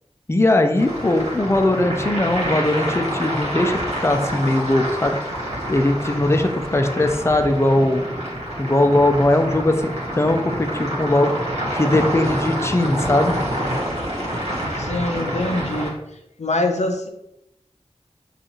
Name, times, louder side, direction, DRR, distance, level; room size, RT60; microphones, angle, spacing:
voice 1, 0.3-5.2 5.7-8.0 8.6-11.3 11.7-13.4, left 1 dB, 25° left, 6 dB, 0.5 m, -19 dB
sound 1, 0.8-15.9, equal, 65° right, 1.5 m, -27 dB
voice 2, 14.8-16.0 16.4-17.1, left 2 dB, 80° left, 5 dB, 0.6 m, -24 dB
5.2 x 2.5 x 3.0 m, 0.84 s
wide cardioid pair, 45°, 12 cm